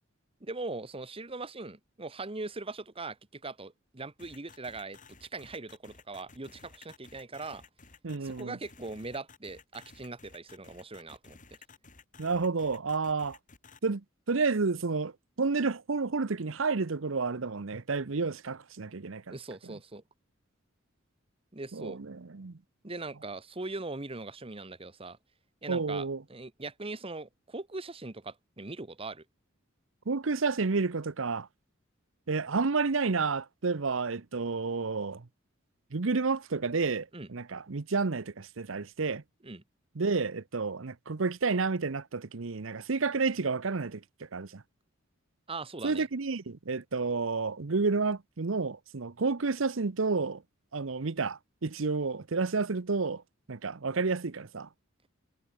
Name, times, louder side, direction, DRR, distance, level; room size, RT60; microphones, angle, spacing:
voice 1, 0.4-7.6 8.2-11.4 19.3-20.0 21.5-22.0 22.8-25.2 25.6-29.2 37.1-37.3 39.4-39.6 45.5-46.1, right 3 dB, 30° right, 1.3 m, -40 dB
sound 1, 4.2-13.8, left 4 dB, 40° left, 3.2 m, -55 dB
voice 2, 8.0-8.6 12.2-13.4 13.8-15.1 15.4-19.3 19.6-19.7 21.7-22.6 25.7-26.2 30.1-31.5 32.3-35.2 35.9-39.2 40.0-44.0 44.3-44.6 45.8-50.4 50.7-53.2 53.5-54.7, right 4 dB, 70° right, 0.8 m, -30 dB
head